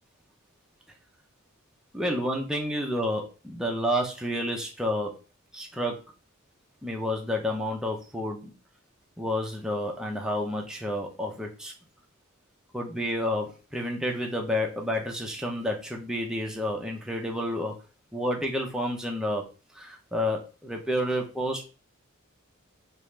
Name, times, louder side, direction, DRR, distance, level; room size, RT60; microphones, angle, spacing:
voice 1, 1.9-5.1 5.5-6.0 6.8-8.5 9.2-11.7 12.7-17.7 18.1-19.4 19.7-21.7, equal, 5° right, 0 dB, 0.5 m, -30 dB
3.2 x 2.4 x 3.1 m, 0.34 s
head